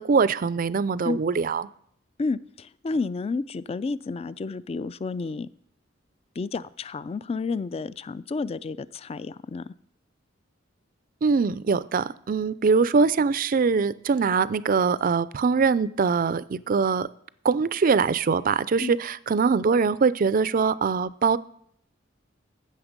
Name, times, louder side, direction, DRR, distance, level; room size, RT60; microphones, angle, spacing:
voice 1, 0.0-1.7 11.2-17.1 17.4-21.4, right 5 dB, 45° right, 18 dB, 0.4 m, -23 dB
voice 2, 2.2-5.5 6.4-9.6 18.8-19.0, left 3 dB, 30° left, 18 dB, 0.3 m, -31 dB
15.0 x 6.5 x 5.2 m, 0.66 s
head